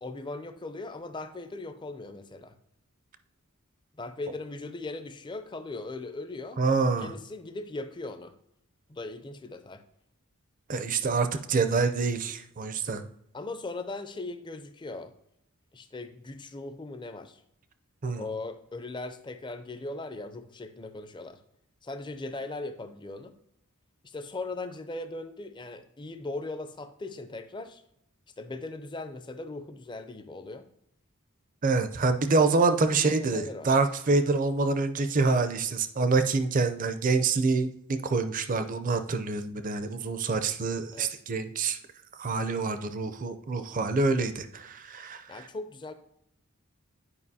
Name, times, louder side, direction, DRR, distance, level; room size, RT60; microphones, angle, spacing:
voice 1, 0.0-2.5 4.0-6.6 7.0-8.3 8.9-9.8 13.3-15.1 15.7-17.4 18.1-21.4 21.8-23.3 24.0-27.8 28.4-30.6 32.9-33.7 40.9-41.1 45.3-45.9, left 2 dB, 20° left, 9 dB, 0.5 m, -39 dB
voice 2, 6.6-7.1 10.7-13.1 18.0-18.3 31.6-41.8 42.2-45.5, right 3 dB, 35° right, 10 dB, 0.5 m, -26 dB
9.7 x 5.0 x 2.7 m, 0.77 s
head